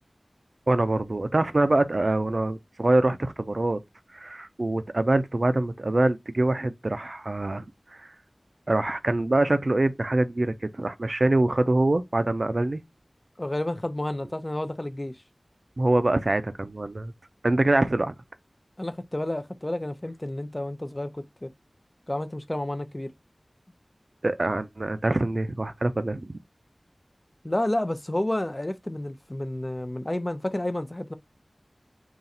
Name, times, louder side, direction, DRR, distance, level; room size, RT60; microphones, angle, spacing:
voice 1, 0.7-3.8 4.1-7.6 8.7-12.8 15.8-17.1 17.4-18.1 24.2-26.4, right 2 dB, 60° right, 0.5 m, -24 dB
voice 2, 13.4-15.1 18.8-21.5 22.1-23.1 27.4-31.1, left 1 dB, 30° left, 0.5 m, -30 dB
3.9 x 2.5 x 4.1 m
wide cardioid pair, 40°, 0 cm